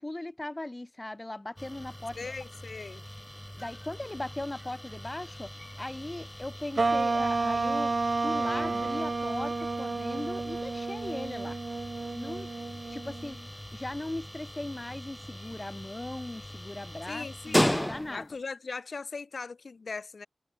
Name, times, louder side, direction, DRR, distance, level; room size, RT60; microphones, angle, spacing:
voice 1, 0.0-2.3 3.6-8.0 8.2-11.6 12.1-12.6 12.9-13.4 13.7-18.3, left 1 dB, 25° left, 3.0 m, -38 dB
sound 1, 1.6-18.4, equal, 10° left, 1.2 m, -37 dB
voice 2, 2.2-3.0 17.1-17.8 18.1-20.3, left 4 dB, 75° left, 1.8 m, -39 dB
sound 2, 6.8-13.4, right 3 dB, 55° right, 0.5 m, -31 dB
wide cardioid pair, 80°, 0 cm